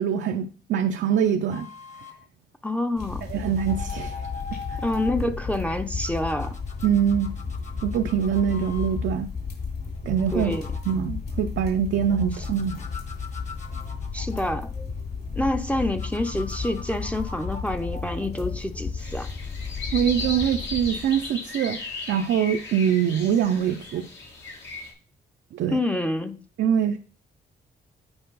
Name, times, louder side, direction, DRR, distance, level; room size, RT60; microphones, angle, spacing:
voice 1, 0.0-1.7 3.3-4.1 4.7-4.8 6.8-7.3 7.8-9.3 10.0-10.5 10.9-12.8 19.9-21.8 22.1-24.1 25.5-25.8 26.6-27.0, right 8 dB, 75° right, 0.5 m, -24 dB
sound 1, 1.5-2.2 3.2-5.2 6.0-8.9 9.9-11.0 12.1-15.2 16.0-19.3 20.1-20.3, left 5 dB, 40° left, 1.3 m, -43 dB
voice 2, 2.6-3.3 4.8-6.5 10.3-10.7 14.1-14.7 15.3-19.3 25.7-26.4, left 1 dB, 5° left, 0.6 m, -27 dB
sound 2, 3.0-21.3, left 5 dB, 55° left, 3.4 m, -33 dB
sound 3, 19.0-24.9, left 3 dB, 75° left, 2.2 m, -36 dB
8.8 x 4.5 x 3.9 m
cardioid pair, 90°, 19 cm